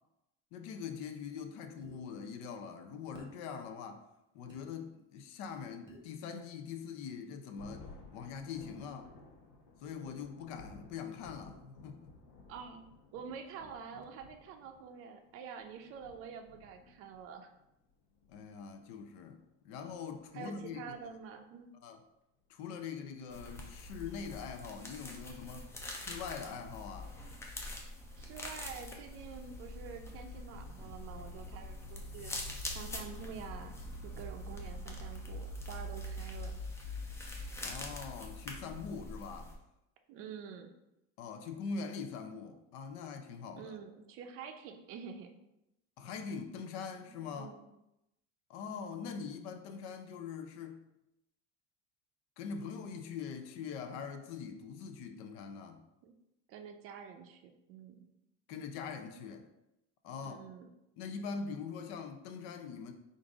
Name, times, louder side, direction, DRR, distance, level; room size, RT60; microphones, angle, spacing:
voice 1, 0.5-4.0 4.3-7.9 8.1-9.1 9.8-12.1 18.3-21.0 21.8-22.0 22.5-27.2 37.6-39.5 41.2-43.8 46.0-47.5 48.5-50.9 52.4-55.9 58.5-59.5 60.0-60.4 61.0-62.9, left 6 dB, 65° left, 6 dB, 0.6 m, -43 dB
sound 1, 1.8-2.0 3.1-3.4 4.5-4.6 5.9-6.1, right 1 dB, 15° right, 0.9 m, -53 dB
Thunder, 7.6-21.5, left 3 dB, 90° left, 0.9 m, -57 dB
voice 2, 12.5-12.9 13.1-17.5 20.3-21.7 28.2-32.4 32.7-33.7 34.0-36.6 40.1-40.7 43.6-45.3 46.9-47.6 56.0-56.1 56.5-58.0 60.2-60.7, right 6 dB, 45° right, 6 dB, 0.5 m, -47 dB
sound 2, 23.3-39.5, left 1 dB, 10° left, 0.4 m, -44 dB
3.8 x 2.6 x 4.7 m, 0.88 s
cardioid pair, 165°, 31 cm